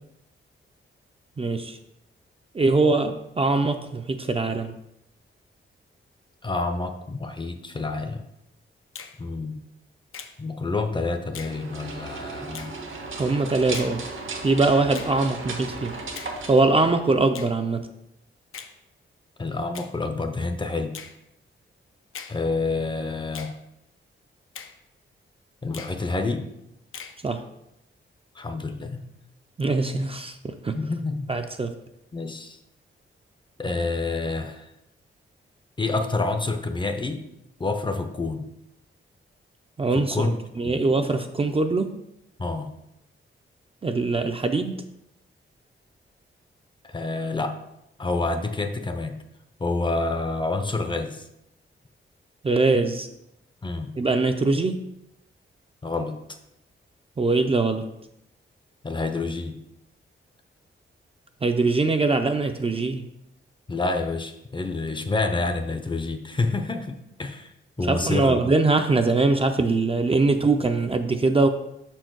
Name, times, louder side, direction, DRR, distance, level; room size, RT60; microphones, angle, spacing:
voice 1, 1.4-1.8 2.5-4.7 13.2-14.0 14.4-15.9 16.5-17.9 27.2-27.4 29.6-30.8 31.3-31.7 39.8-41.9 43.8-44.8 52.4-53.1 54.0-54.8 57.2-57.9 61.4-63.0 67.9-71.5, right 3 dB, 25° right, 6 dB, 0.4 m, -22 dB
voice 2, 6.4-8.2 9.2-9.6 10.4-12.7 19.4-21.0 22.3-23.5 25.6-26.4 28.4-29.0 30.7-31.3 32.1-32.6 33.6-34.7 35.8-37.2 37.6-38.5 39.9-40.4 40.7-40.9 42.4-42.7 46.8-47.6 48.0-49.2 49.6-51.2 53.6-53.9 55.8-56.2 58.8-59.5 63.7-67.5 67.8-68.5, left 3 dB, 25° left, 6 dB, 0.5 m, -28 dB
Finger snapping, 8.9-9.2 10.1-10.4 11.3-11.6 12.5-12.7 13.7-14.0 14.9-15.2 16.1-16.4 17.3-17.5 18.5-18.7 19.7-19.9 20.9-21.2 22.1-22.4 23.3-23.6 24.5-24.8 25.7-26.0 26.9-27.2, left 7 dB, 90° left, 0.6 m, -40 dB
sound 1, 11.3-17.5, right 3 dB, 70° right, 1.1 m, -36 dB
6.0 x 4.4 x 4.6 m, 0.82 s
wide cardioid pair, 125°, 21 cm